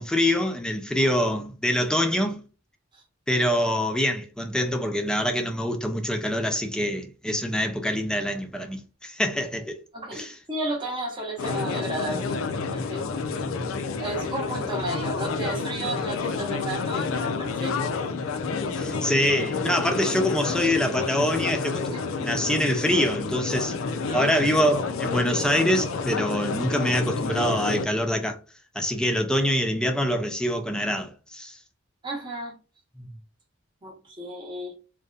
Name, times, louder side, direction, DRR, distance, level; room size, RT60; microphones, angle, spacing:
voice 1, 0.0-2.4 3.3-9.8 10.1-10.3 18.7-23.8 24.1-28.4 28.7-31.6 33.0-33.1, equal, 5° left, 0.3 m, -25 dB
voice 2, 9.9-12.4 12.7-13.1 13.3-13.4 14.0-17.9 21.9-22.0 24.0-24.3 32.0-32.6 33.8-34.7, right 1 dB, 25° right, 0.7 m, -33 dB
sound 1, 11.4-27.9, left 4 dB, 85° left, 0.4 m, -29 dB
2.6 x 2.1 x 2.3 m
head